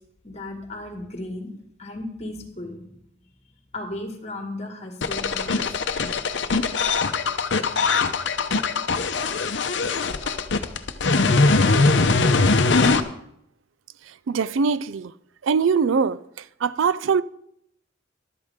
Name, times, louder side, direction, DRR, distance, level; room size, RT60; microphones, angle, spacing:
voice 1, 0.2-1.5 1.8-3.0 3.7-5.7, left 1 dB, 35° left, 2.0 m, -35 dB
sound 1, 5.0-13.0, left 3 dB, 65° left, 0.8 m, -21 dB
voice 2, 14.3-15.1 15.4-16.2 16.6-17.2, right 5 dB, 85° right, 0.4 m, -22 dB
13.0 x 12.0 x 3.7 m
head